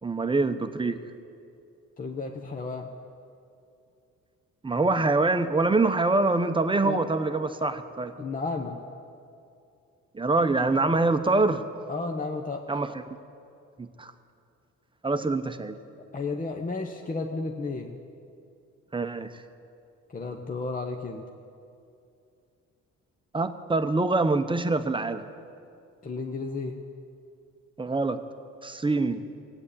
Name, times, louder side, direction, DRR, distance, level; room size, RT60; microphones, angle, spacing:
voice 1, 0.0-1.0 4.6-8.1 10.1-11.6 12.7-12.9 13.8-14.1 15.0-15.8 18.9-19.3 23.3-25.2 27.8-28.2 28.6-29.2, right 3 dB, 15° right, 9 dB, 0.8 m, -25 dB
voice 2, 2.0-2.9 6.8-7.0 8.2-8.8 11.9-12.6 16.1-18.0 20.1-21.3 26.0-26.8, left 3 dB, 25° left, 3 dB, 0.9 m, -32 dB
17.0 x 8.9 x 8.4 m, 2.5 s
cardioid pair, 90°, 30 cm